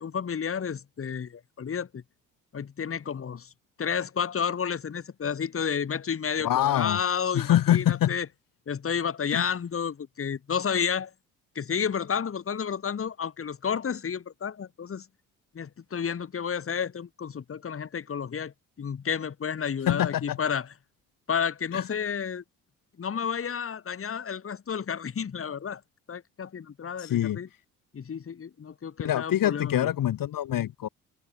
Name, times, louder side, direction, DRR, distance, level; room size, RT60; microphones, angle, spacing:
voice 1, 0.0-2.0 2.5-3.5 3.8-8.3 8.7-11.1 11.5-15.1 15.5-20.7 21.3-22.4 23.0-25.8 26.1-27.5 27.9-29.9, left 7 dB, 30° left, 2.7 m, -31 dB
voice 2, 6.4-7.0 7.3-8.2 9.3-9.4 19.9-20.4 21.7-21.8 27.0-27.4 29.0-30.9, left 12 dB, 50° left, 6.5 m, -25 dB
figure-of-eight pair, 50°, 42 cm